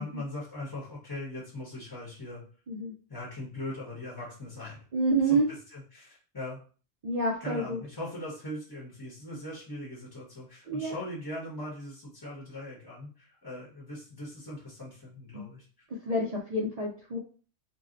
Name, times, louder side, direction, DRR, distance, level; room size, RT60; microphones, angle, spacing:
voice 1, 0.0-2.4 3.1-4.8 5.3-5.4 5.7-6.6 7.4-15.7, left 1 dB, 20° left, -5 dB, 0.8 m, -40 dB
voice 2, 4.9-5.5 7.0-7.8 10.7-10.9 15.3-15.5 16.1-17.2, right 2 dB, 75° right, -2 dB, 0.3 m, -28 dB
2.6 x 2.1 x 3.7 m, 0.39 s
omnidirectional pair, 1.3 m